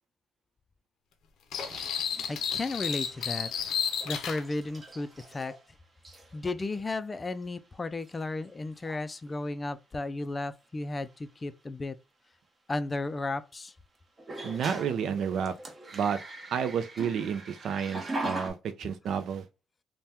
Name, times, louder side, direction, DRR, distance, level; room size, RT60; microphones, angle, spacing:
sound 1, 1.5-4.4, left 8 dB, 75° left, 0.6 m, -32 dB
sound 2, 1.6-5.7 6.0-6.4 7.4-7.5 8.0-8.5 8.7-9.1 11.1-11.2 14.2-18.5, right 2 dB, 30° right, 0.8 m, -41 dB
voice 1, 2.3-3.5 4.1-5.5 6.3-11.9 12.7-13.7, left 2 dB, 25° left, 0.3 m, -34 dB
voice 2, 14.4-15.5 15.9-16.2 16.5-19.4, right 7 dB, 70° right, 0.4 m, -30 dB
2.8 x 2.2 x 3.3 m
cardioid pair, 90°, 0 cm